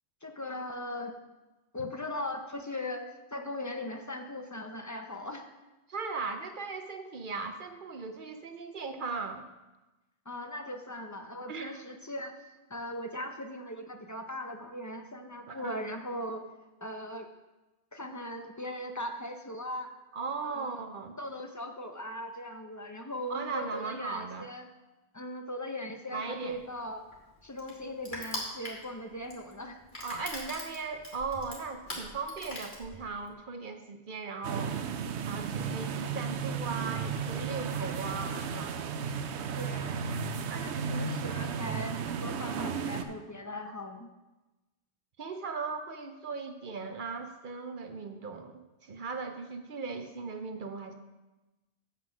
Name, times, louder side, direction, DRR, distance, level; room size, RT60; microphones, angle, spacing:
voice 1, 0.2-1.1 1.7-5.5 10.3-12.3 12.7-16.4 16.8-17.3 17.9-19.9 20.4-20.8 21.2-24.7 25.1-27.0 27.4-29.8 39.5-39.9 40.6-41.9 42.2-44.1, left 1 dB, 25° left, 5 dB, 0.5 m, -39 dB
voice 2, 5.9-9.5 11.5-11.8 15.5-15.8 20.1-21.2 23.3-24.5 26.1-26.6 30.0-34.7 35.2-38.8 40.5-40.9 45.2-50.9, right 4 dB, 55° right, 6 dB, 0.8 m, -38 dB
Crushing, 26.5-33.3, left 1 dB, 45° left, 2.0 m, -42 dB
sound 1, 34.4-43.0, right 6 dB, 85° right, 0.9 m, -34 dB
7.9 x 5.8 x 6.1 m, 1.1 s
omnidirectional pair, 1.1 m